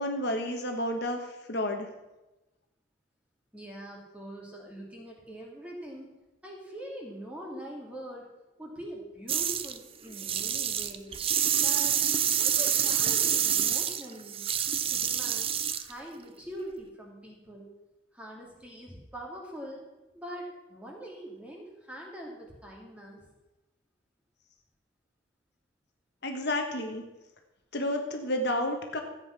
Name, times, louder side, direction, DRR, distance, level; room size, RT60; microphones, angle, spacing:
voice 1, 0.0-1.9 26.2-27.0 27.7-29.0, left 1 dB, 55° left, 4 dB, 1.4 m, -31 dB
voice 2, 3.5-8.3 8.6-11.1 11.6-11.9 12.4-14.4 14.8-17.7 18.1-19.8 20.1-23.3, right 1 dB, 5° right, -1 dB, 2.6 m, -43 dB
sound 1, 9.3-9.8 10.1-15.9, right 9 dB, 25° right, 0.5 m, -27 dB
14.0 x 8.9 x 6.0 m, 1.0 s
head